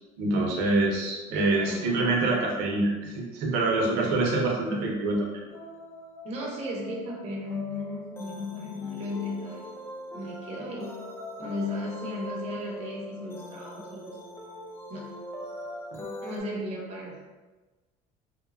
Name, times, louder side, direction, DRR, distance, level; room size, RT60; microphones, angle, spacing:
voice 1, 0.2-5.3 15.9-16.1, right 2 dB, 75° right, -1 dB, 0.7 m, -26 dB
voice 2, 1.3-2.2 6.2-9.7 10.1-11.0 11.4-14.2 14.9-15.2 16.2-17.2, left 2 dB, 40° right, -3 dB, 0.6 m, -35 dB
sound 1, 5.5-16.4, equal, 15° left, 0.3 m, -42 dB
2.9 x 2.2 x 2.3 m, 1.2 s
cardioid pair, 140°, 17 cm